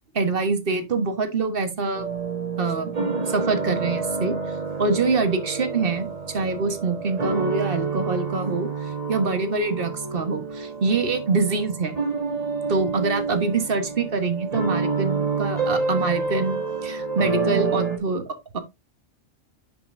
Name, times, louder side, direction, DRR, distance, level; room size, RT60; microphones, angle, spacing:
voice 1, 0.1-2.1 2.6-2.9 3.3-4.4 4.8-12.0 12.7-18.6, right 4 dB, 45° right, 1.5 m, -25 dB
sound 1, 1.9-18.0, right 4 dB, 30° right, 1.6 m, -28 dB
10.5 x 5.5 x 2.6 m
omnidirectional pair, 1.3 m